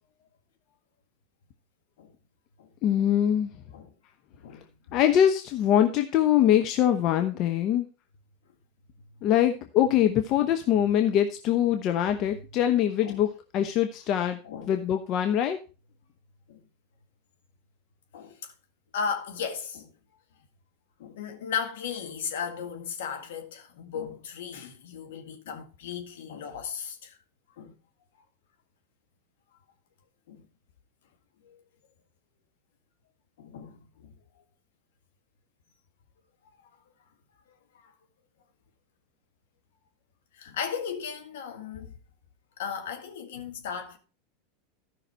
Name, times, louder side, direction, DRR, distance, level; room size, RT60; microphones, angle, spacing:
voice 1, 2.8-3.5 4.9-7.9 9.2-14.4 14.7-15.6, left 10 dB, 45° left, 0.9 m, -23 dB
voice 2, 4.4-5.0 10.8-10.9 13.0-13.2 14.4-14.7 16.5-16.6 18.1-18.5 18.9-19.9 21.0-27.2 27.6-27.7 30.3-30.4 31.5-31.6 33.4-34.1 37.7-37.9 40.3-42.0 42.6-44.0, left 7 dB, 70° left, 1.9 m, -36 dB
13.5 x 5.8 x 4.4 m
hypercardioid pair, 95°, 0 cm